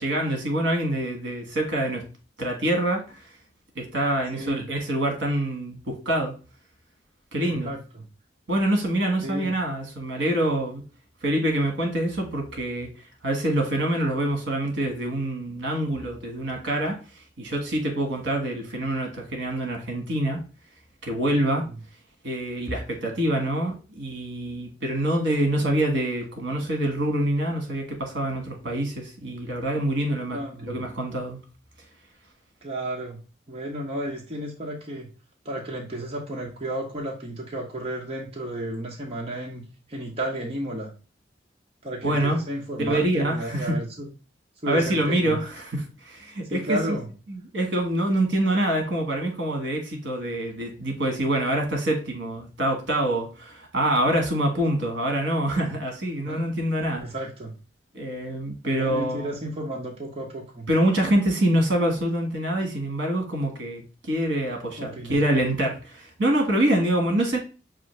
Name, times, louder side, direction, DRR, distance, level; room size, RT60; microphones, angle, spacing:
voice 1, 0.0-2.0 2.4-3.2 3.7-6.3 7.3-7.7 8.5-10.8 11.2-12.9 13.2-17.0 17.4-20.4 21.0-21.7 22.2-31.4 42.0-42.4 42.8-43.8 44.7-46.8 47.3-57.0 57.9-59.3 60.7-67.4, right 1 dB, 70° right, 1.4 m, -25 dB
voice 2, 4.3-4.6 7.4-8.0 9.2-9.5 30.3-30.8 32.6-33.2 33.5-35.1 35.4-39.6 39.9-40.9 41.8-44.1 44.6-45.4 46.5-47.1 56.3-56.4 57.0-57.5 58.7-60.7 64.8-65.2, right 1 dB, 35° right, 0.9 m, -32 dB
6.0 x 2.6 x 3.1 m
head